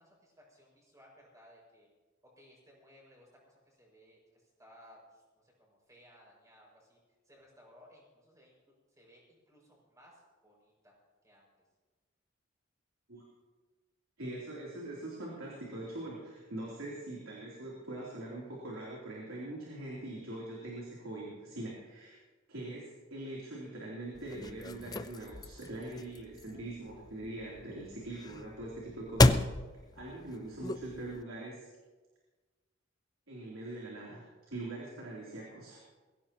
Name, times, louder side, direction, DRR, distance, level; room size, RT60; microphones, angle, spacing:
voice 1, 0.0-1.9 2.2-7.0 7.2-10.9 11.2-11.5 26.4-26.6, equal, 15° right, -3 dB, 6.1 m, -61 dB
voice 2, 14.2-22.2 22.5-29.4 29.9-31.7 33.3-35.8, right 1 dB, 85° right, -4 dB, 3.5 m, -42 dB
sound 1, 24.1-31.2, left 2 dB, 20° left, 0.5 m, -33 dB
22.0 x 16.0 x 3.0 m, 1.3 s
head